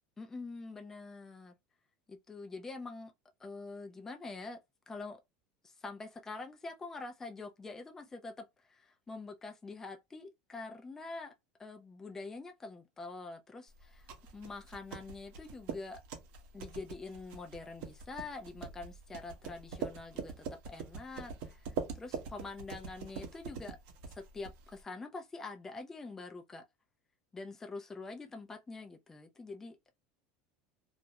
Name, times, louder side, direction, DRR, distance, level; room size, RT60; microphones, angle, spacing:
voice 1, 0.2-1.5 2.1-3.1 3.4-4.6 4.9-5.2 5.6-11.3 11.6-16.0 16.5-23.8 24.0-26.6 27.3-29.8, left 3 dB, 10° left, 0.3 m, -45 dB
sound 1, 13.8-24.8, right 5 dB, 60° right, 0.7 m, -43 dB
2.4 x 2.0 x 2.7 m
supercardioid pair, 140°, 4 cm